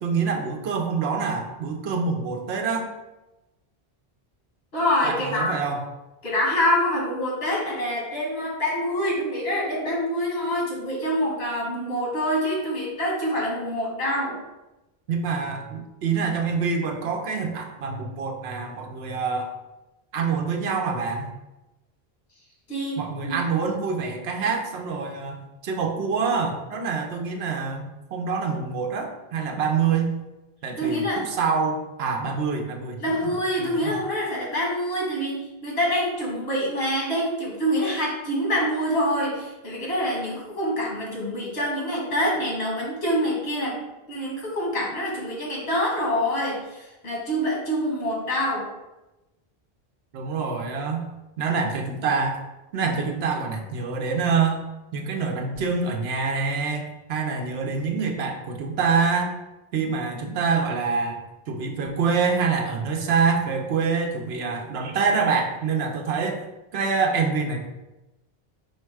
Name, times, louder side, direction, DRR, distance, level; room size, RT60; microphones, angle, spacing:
voice 1, 0.0-2.9 5.0-5.9 15.1-19.5 20.1-21.3 23.0-30.1 30.6-33.3 33.6-34.0 50.1-51.1 51.4-52.4 52.7-54.7 54.9-59.3 59.7-61.2 61.5-66.4 66.7-67.7, right 5 dB, 80° right, 3 dB, 0.9 m, -26 dB
voice 2, 4.7-5.5 6.2-14.3 22.7-23.4 30.8-31.2 33.0-43.8 44.1-48.7, equal, 90° left, -4 dB, 1.5 m, -26 dB
4.7 x 2.2 x 4.6 m, 1.0 s
omnidirectional pair, 1.0 m